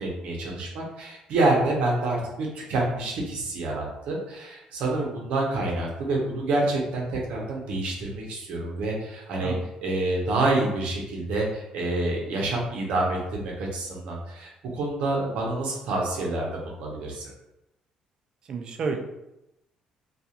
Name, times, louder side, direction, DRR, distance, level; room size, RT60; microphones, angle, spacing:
voice 1, 0.0-9.6 9.8-17.3, right 2 dB, 75° right, -1 dB, 0.7 m, -27 dB
voice 2, 18.4-19.0, right 4 dB, 45° right, 3 dB, 0.4 m, -30 dB
2.3 x 2.3 x 2.8 m, 0.89 s
cardioid pair, 145°, 2 cm